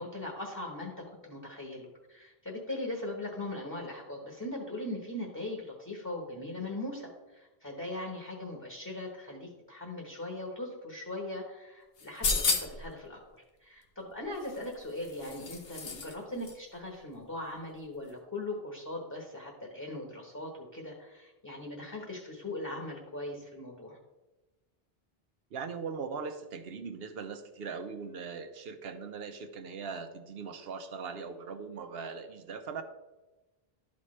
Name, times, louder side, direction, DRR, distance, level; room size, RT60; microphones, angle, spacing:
voice 1, 0.0-24.0, left 1 dB, 20° left, 0 dB, 1.1 m, -40 dB
sound 1, 12.0-12.9 14.4-16.1 16.4-16.5, left 4 dB, 70° left, 1.1 m, -32 dB
voice 2, 25.5-32.8, right 5 dB, 75° right, 7 dB, 0.9 m, -40 dB
12.0 x 4.2 x 3.2 m, 1.1 s
omnidirectional pair, 1.0 m